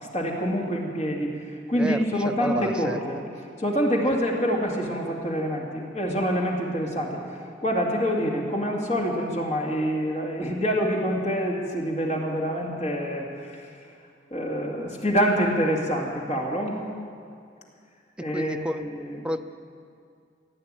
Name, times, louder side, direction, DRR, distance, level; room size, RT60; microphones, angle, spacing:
voice 1, 0.0-3.2 3.6-7.2 7.6-13.7 14.3-16.8 18.2-19.2, equal, 35° left, -1 dB, 2.2 m, -26 dB
voice 2, 2.2-3.0 18.3-18.9 19.2-19.4, equal, 5° right, 6 dB, 0.5 m, -30 dB
16.5 x 9.4 x 8.8 m, 2.3 s
head